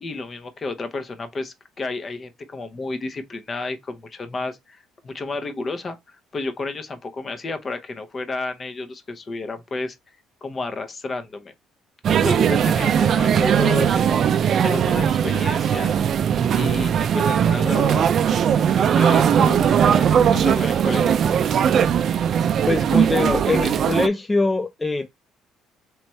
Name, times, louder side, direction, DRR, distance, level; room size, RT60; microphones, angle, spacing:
voice 1, 0.0-10.0 10.4-11.5 12.1-14.1 14.6-16.0 16.6-18.3 18.7-19.6 20.0-21.6, left 3 dB, 35° left, 0.8 m, -31 dB
sound 1, 12.0-24.1, right 8 dB, 55° right, 0.4 m, -19 dB
voice 2, 22.7-25.1, left 2 dB, 20° left, 0.4 m, -23 dB
3.3 x 3.1 x 4.2 m
supercardioid pair, 80°, 0 cm